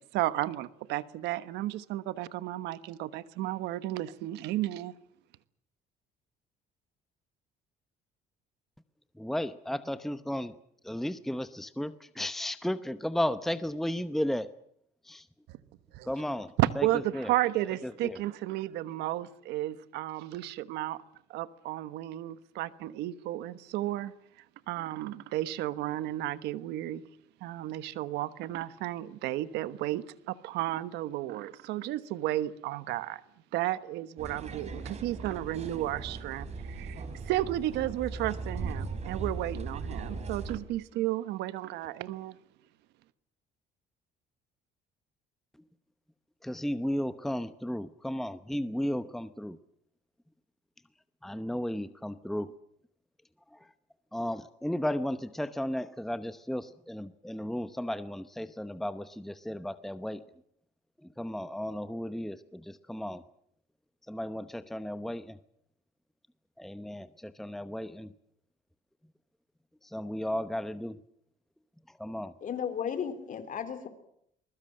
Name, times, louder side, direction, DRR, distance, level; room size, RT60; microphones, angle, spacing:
voice 1, 0.0-4.9 15.5-15.6 15.9-16.1 16.6-21.0 21.3-24.1 24.7-27.0 27.4-33.2 33.5-42.4, right 15 dB, 90° right, 14 dB, 1.2 m, -33 dB
voice 2, 9.2-10.5 10.8-14.5 15.0-15.3 16.0-16.9 17.1-17.3 17.8-18.2 46.4-49.6 51.2-52.5 53.5-53.6 54.1-60.2 61.2-63.2 64.1-65.4 66.6-68.1 69.8-71.0 72.0-72.3, equal, ahead, 12 dB, 0.9 m, -34 dB
sound 1, 34.2-40.6, right 4 dB, 40° right, 4.2 m, -38 dB
voice 3, 72.4-73.9, left 8 dB, 50° left, 9 dB, 3.5 m, -34 dB
23.5 x 21.5 x 7.7 m, 0.71 s
cardioid pair, 110°, 17 cm